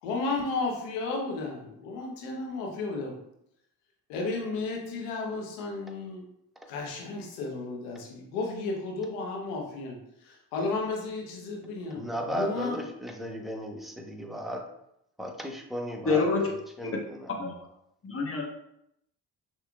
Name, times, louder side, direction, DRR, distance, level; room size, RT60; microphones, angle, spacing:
voice 1, 0.0-3.1 4.1-6.3 6.7-12.8, left 3 dB, 90° left, 0 dB, 1.0 m, -33 dB
voice 2, 11.9-14.6 15.2-17.3, equal, ahead, 1 dB, 1.0 m, -36 dB
voice 3, 16.0-16.5 17.4-17.5 18.0-18.4, left 4 dB, 30° left, 0 dB, 1.1 m, -26 dB
6.0 x 3.0 x 2.4 m, 0.78 s
hypercardioid pair, 50°, 46 cm